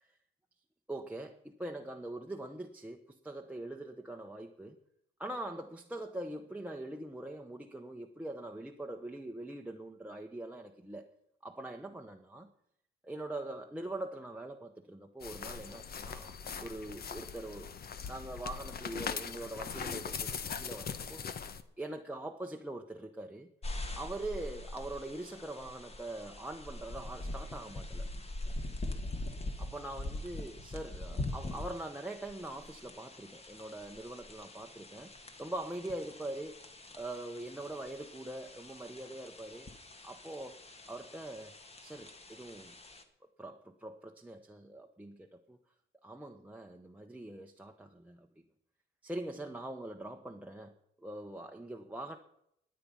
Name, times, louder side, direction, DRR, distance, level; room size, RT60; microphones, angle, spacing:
voice 1, 0.9-4.8 5.2-11.1 11.4-12.5 13.0-17.7 18.1-21.2 21.8-23.5 23.9-28.1 29.6-35.1 35.4-36.6 36.9-39.7 40.0-40.6 40.9-41.5 41.8-42.8 43.4-45.6 46.0-48.3 49.0-52.2, right 1 dB, 5° right, 1 dB, 1.0 m, -43 dB
sound 1, 15.2-21.6, left 6 dB, 50° left, 1.1 m, -40 dB
sound 2, 23.6-43.0, left 2 dB, 30° left, 1.8 m, -43 dB
20.5 x 8.7 x 5.5 m, 0.77 s
cardioid pair, 90°, 20 cm